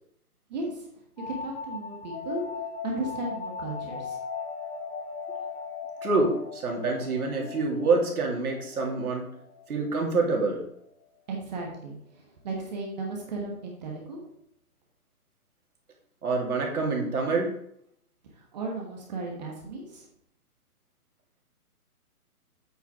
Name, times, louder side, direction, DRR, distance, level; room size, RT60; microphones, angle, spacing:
voice 1, 0.5-0.8 1.3-2.4 2.8-4.2 11.3-14.2 18.5-20.1, right 2 dB, 30° right, 0 dB, 1.3 m, -35 dB
sound 1, 1.2-10.5, left 5 dB, 5° left, 2.2 m, -39 dB
voice 2, 6.0-9.2 9.7-10.6 16.2-17.5, right 3 dB, 75° right, 0 dB, 2.5 m, -26 dB
8.1 x 4.8 x 4.5 m, 0.73 s
hypercardioid pair, 160°, 45 cm